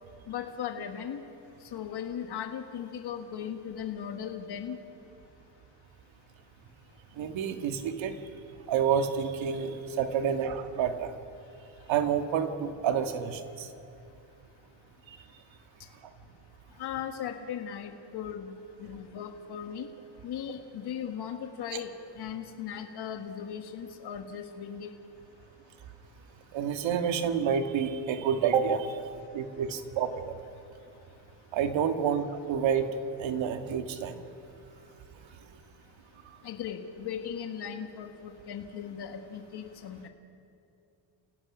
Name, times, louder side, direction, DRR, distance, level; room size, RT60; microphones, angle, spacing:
voice 1, 0.3-1.2 1.7-4.8 16.8-18.5 18.8-19.9 20.2-24.9 36.4-40.1, left 8 dB, 55° left, 5 dB, 1.5 m, -38 dB
voice 2, 7.2-8.2 8.7-11.1 11.9-13.7 21.7-21.8 26.5-29.0 29.3-30.3 31.5-32.9 33.2-34.2, right 7 dB, 70° right, 6 dB, 1.7 m, -29 dB
29.0 x 17.5 x 6.2 m, 2.7 s
cardioid pair, 90°, 47 cm